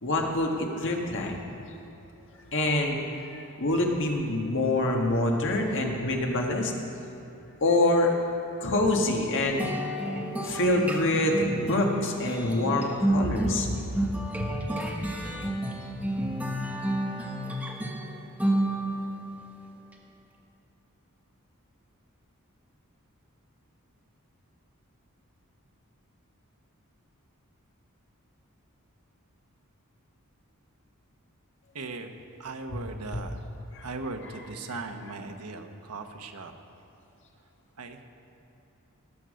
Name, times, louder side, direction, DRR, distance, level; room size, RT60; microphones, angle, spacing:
voice 1, 0.0-1.4 2.5-3.0 3.3-6.7 7.6-8.1 8.6-9.6 10.4-13.8 14.4-14.5 33.8-33.9, left 1 dB, 60° left, 1 dB, 1.6 m, -26 dB
sound 1, 9.6-19.2, right 1 dB, 5° right, 1.2 m, -30 dB
voice 2, 31.7-32.1 32.4-33.5 33.8-36.5 37.8-38.1, right 3 dB, 85° right, 5 dB, 1.1 m, -38 dB
19.5 x 7.0 x 6.4 m, 3.0 s
head